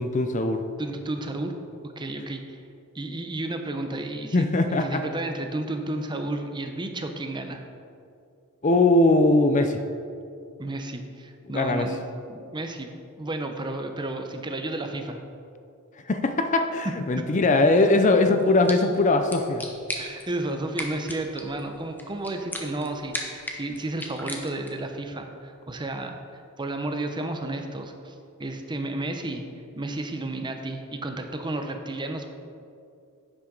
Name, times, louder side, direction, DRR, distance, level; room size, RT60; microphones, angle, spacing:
voice 1, 0.0-0.6 4.3-5.0 8.6-9.8 11.5-11.9 16.1-19.6, left 2 dB, 35° left, 8 dB, 0.5 m, -21 dB
voice 2, 0.8-1.5 2.0-2.6 2.9-7.6 10.6-12.9 13.2-15.2 19.9-26.2 26.6-28.1 28.4-29.4 29.8-32.3, right 2 dB, 20° right, 5 dB, 0.7 m, -32 dB
sound 1, 18.4-24.9, left 1 dB, 10° left, 1.0 m, -38 dB
11.0 x 8.8 x 3.9 m, 2.5 s
head